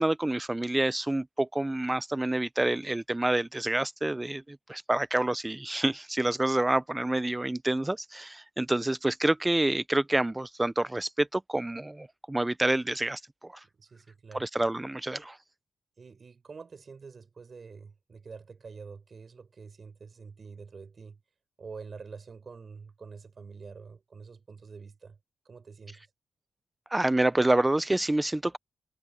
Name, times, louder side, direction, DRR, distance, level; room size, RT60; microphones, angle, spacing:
voice 1, 0.0-13.5 14.3-15.4 26.9-28.6, right 1 dB, 15° right, 0.7 m, -28 dB
voice 2, 13.8-14.5 16.0-21.2 21.6-25.2 25.4-26.0, right 5 dB, 50° right, 6.3 m, -46 dB
cardioid pair, 75°, 0 cm